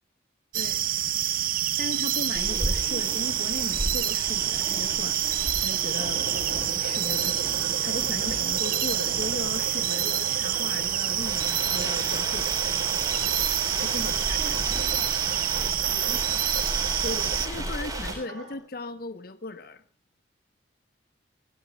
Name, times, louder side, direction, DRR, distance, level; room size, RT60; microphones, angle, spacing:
sound 1, 0.5-17.5, right 12 dB, 45° right, 0.8 m, -27 dB
voice 1, 1.8-6.2 6.5-12.5 13.8-14.4 17.0-19.8, left 2 dB, 50° left, 11 dB, 0.9 m, -37 dB
sound 2, 2.3-18.2, right 1 dB, 20° right, 6.0 m, -35 dB
sound 3, 6.0-18.5, right 2 dB, 85° right, 4.9 m, -40 dB
voice 2, 13.9-16.6, left 1 dB, 30° left, 6 dB, 2.6 m, -46 dB
27.0 x 18.5 x 2.4 m, 0.34 s
head